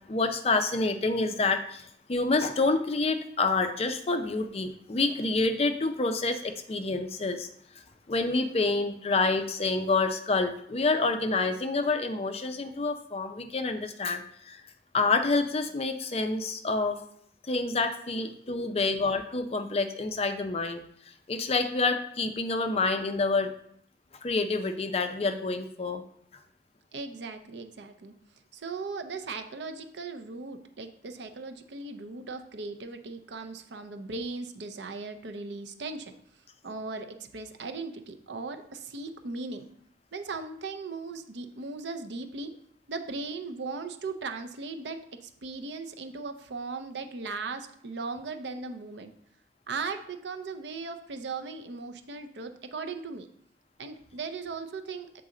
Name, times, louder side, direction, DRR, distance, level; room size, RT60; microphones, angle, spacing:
voice 1, 0.1-7.5 8.1-14.6 14.9-17.0 17.5-20.8 21.3-23.5 24.2-26.0, left 3 dB, 35° left, 7 dB, 0.4 m, -28 dB
voice 2, 18.5-19.0 26.9-28.1 28.5-36.1 36.6-39.7 40.1-42.5 42.9-49.1 49.7-53.3 53.8-55.2, right 4 dB, 70° right, 7 dB, 0.6 m, -38 dB
7.5 x 4.0 x 3.7 m, 0.66 s
head